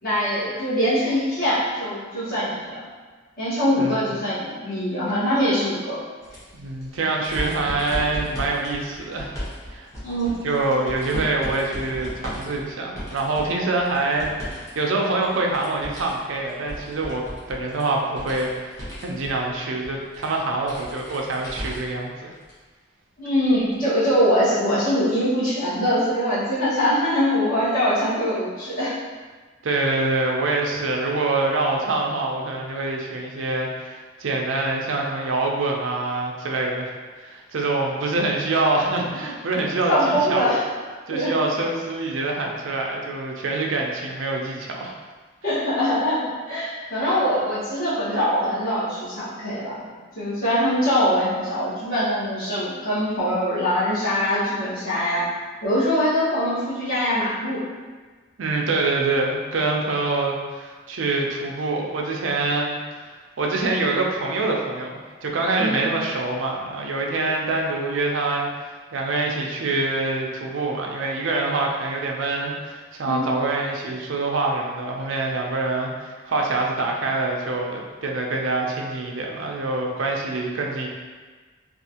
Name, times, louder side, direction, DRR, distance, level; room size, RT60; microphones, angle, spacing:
voice 1, 0.0-2.8 3.4-6.0 10.0-10.4 23.2-28.9 39.9-40.6 41.1-41.3 45.4-55.2 55.6-57.6 65.6-65.8 73.1-73.2, equal, 50° left, -12 dB, 1.4 m, -23 dB
voice 2, 3.7-4.1 6.5-9.4 9.7-9.9 10.4-22.3 29.6-40.5 41.1-45.0 58.4-62.8 63.0-80.9, right 2 dB, 80° right, 0 dB, 0.5 m, -25 dB
sound 1, 6.2-14.7 15.0-22.0 22.4-22.5 23.7-23.8, equal, 15° left, 0.9 m, -36 dB
3.4 x 2.4 x 2.8 m, 1.4 s
head